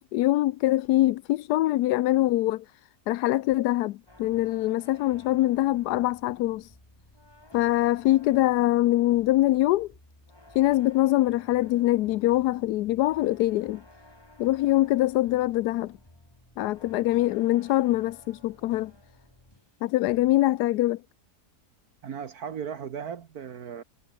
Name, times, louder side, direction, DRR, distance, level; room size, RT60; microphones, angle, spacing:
voice 1, 0.1-2.6 3.1-6.7 7.5-9.9 10.5-13.8 14.4-15.9 16.6-18.9 19.8-21.0, left 16 dB, 85° left, 1.2 m, -23 dB
sound 1, 4.1-19.8 20.1-20.5, left 1 dB, 15° left, 2.6 m, -54 dB
voice 2, 22.0-23.8, right 7 dB, 70° right, 1.7 m, -36 dB
omnidirectional pair, 1.7 m